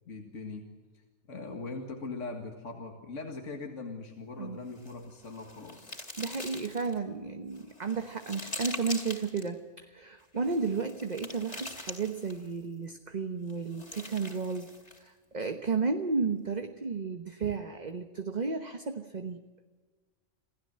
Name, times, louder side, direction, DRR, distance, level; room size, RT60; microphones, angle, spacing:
voice 1, 0.1-1.0 1.3-6.0, left 3 dB, 70° left, 3 dB, 2.3 m, -41 dB
sound 1, 4.7-7.0 7.5-9.5 10.4-12.5 13.5-15.1, left 1 dB, 30° left, 3.2 m, -43 dB
voice 2, 6.2-14.7 15.0-19.4, right 4 dB, 35° right, 7 dB, 1.2 m, -33 dB
27.5 x 16.0 x 7.7 m, 1.4 s
omnidirectional pair, 1.3 m